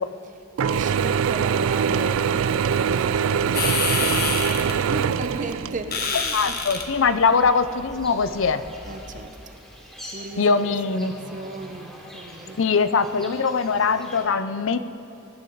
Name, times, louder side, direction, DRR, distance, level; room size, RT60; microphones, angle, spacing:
voice 1, 0.6-6.6 8.9-9.5 10.1-12.6, right 3 dB, 40° right, 8 dB, 0.8 m, -35 dB
Mechanisms / Drill, 0.6-6.1, right 7 dB, 80° right, 0.4 m, -23 dB
sound 1, 3.5-9.2, left 5 dB, 50° left, 1.3 m, -30 dB
voice 2, 6.3-8.6 10.4-11.1 12.6-14.8, left 5 dB, 70° left, 12 dB, 0.5 m, -21 dB
sound 2, 6.7-14.2, equal, 5° left, 2.8 m, -44 dB
21.0 x 10.5 x 4.0 m, 2.8 s
head